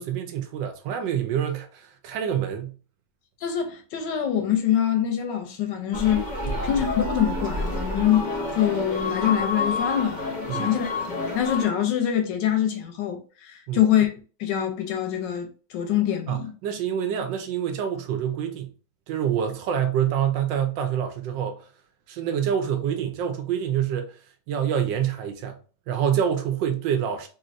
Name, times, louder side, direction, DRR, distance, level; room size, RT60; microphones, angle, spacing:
voice 1, 0.0-2.7 6.5-6.7 10.5-10.7 13.7-13.8 16.3-18.7 19.1-21.6 22.1-24.1 24.5-25.5 25.9-27.3, right 9 dB, 75° right, 1.2 m, -26 dB
voice 2, 3.4-6.3 6.6-14.1 14.4-16.5, left 10 dB, 75° left, 1.2 m, -25 dB
sound 1, 5.9-11.7, left 2 dB, 40° left, 0.7 m, -29 dB
3.3 x 2.8 x 2.4 m
omnidirectional pair, 2.2 m